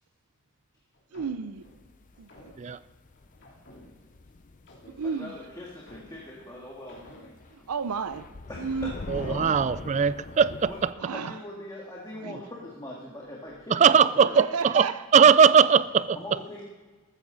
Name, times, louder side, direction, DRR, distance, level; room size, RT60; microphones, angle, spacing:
sound 1, 0.9-4.3 4.7-7.3, left 1 dB, 50° left, 3.0 m, -53 dB
voice 1, 1.1-1.7 2.2-2.5 5.0-5.4 7.5-8.3 8.6-8.9 11.0-11.4 12.1-12.4 14.4-15.1, right 5 dB, 85° right, 14 dB, 0.5 m, -32 dB
sound 2, 1.7-6.3 6.5-6.7 7.1-10.9, left 3 dB, 35° left, 0.5 m, -42 dB
voice 2, 5.0-7.1 7.6-7.7 8.5-9.8 10.7-10.8 11.1-14.4 16.1-16.6, left 1 dB, 15° left, -3 dB, 1.8 m, -41 dB
voice 3, 9.1-10.9 13.7-14.9 15.1-16.2, right 7 dB, 30° right, 17 dB, 0.3 m, -20 dB
14.0 x 14.0 x 4.0 m, 1.3 s
head